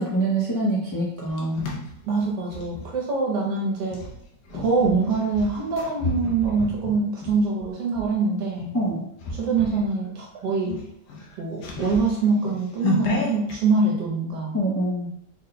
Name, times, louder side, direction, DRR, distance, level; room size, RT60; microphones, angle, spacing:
voice 1, 0.0-1.6 8.7-9.0 14.5-15.1, right 1 dB, 30° left, -6 dB, 0.3 m, -25 dB
sound 1, 0.9-2.9 3.9-8.1 8.6-8.8 9.2-9.9 10.2-10.3 10.6-13.6, left 2 dB, 70° left, 1.3 m, -31 dB
voice 2, 2.0-4.0 4.5-8.7 9.3-10.8 11.4-14.5, right 4 dB, 75° right, -3 dB, 1.5 m, -24 dB
4.1 x 2.2 x 3.9 m, 0.74 s
omnidirectional pair, 1.9 m